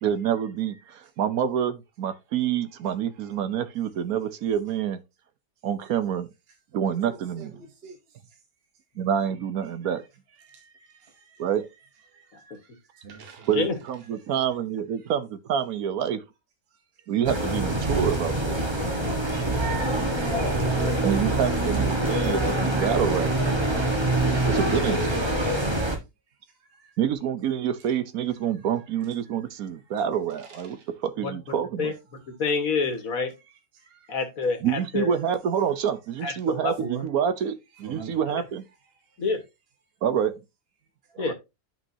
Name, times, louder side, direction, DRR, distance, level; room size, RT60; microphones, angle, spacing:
voice 1, 0.0-5.0 5.6-6.3 6.7-7.6 9.0-10.0 11.4-11.7 13.5-16.2 17.1-18.6 20.9-23.3 24.5-25.1 27.0-31.9 34.6-38.6 40.0-40.4 41.1-41.3, right 8 dB, 75° right, 1.3 m, -27 dB
voice 2, 10.4-11.4 12.1-12.6 12.9-13.5 18.8-19.0 26.8-26.9 33.9-34.0 36.8-37.0 37.8-38.1, right 6 dB, 45° right, 1.1 m, -42 dB
sound 1, 17.2-26.0, right 1 dB, 20° right, 1.3 m, -25 dB
voice 3, 32.3-33.3 34.1-35.1 36.2-36.7 38.3-38.4 39.2-39.4 41.2-41.3, left 4 dB, 65° left, 1.9 m, -27 dB
10.5 x 5.4 x 2.8 m
omnidirectional pair, 1.6 m